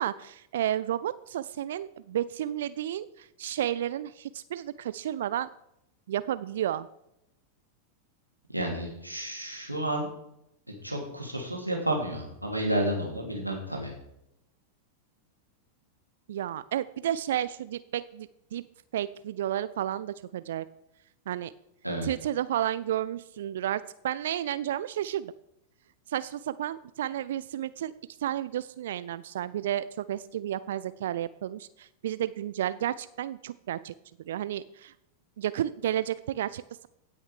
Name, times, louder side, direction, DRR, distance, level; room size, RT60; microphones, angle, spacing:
voice 1, 0.0-5.5 6.1-6.9 16.3-18.6 18.9-20.7 21.3-21.5 22.0-25.3 26.1-27.9 28.2-33.9 34.3-34.9 35.4-36.9, right 11 dB, 60° right, 15 dB, 0.4 m, -32 dB
voice 2, 8.5-10.1 10.8-13.9 21.8-22.1, right 1 dB, 90° right, 0 dB, 2.9 m, -31 dB
16.5 x 6.4 x 4.8 m, 0.80 s
figure-of-eight pair, 90°, 0 cm